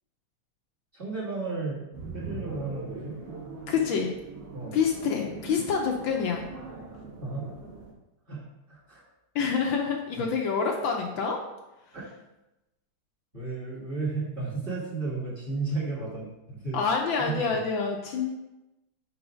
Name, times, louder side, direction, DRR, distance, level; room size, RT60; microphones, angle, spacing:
voice 1, 0.9-1.8 2.1-3.2 4.5-4.8 7.2-7.5 8.3-9.0 11.9-12.0 13.3-16.8 17.3-17.6, right 3 dB, 30° right, -6 dB, 1.7 m, -33 dB
sound 1, 1.9-7.9, right 3 dB, 45° right, 1.7 m, -41 dB
voice 2, 3.7-4.1 4.7-6.5 9.3-11.4 16.7-18.3, left 5 dB, 70° left, 1 dB, 1.3 m, -27 dB
4.8 x 4.4 x 5.0 m, 0.96 s
omnidirectional pair, 2.4 m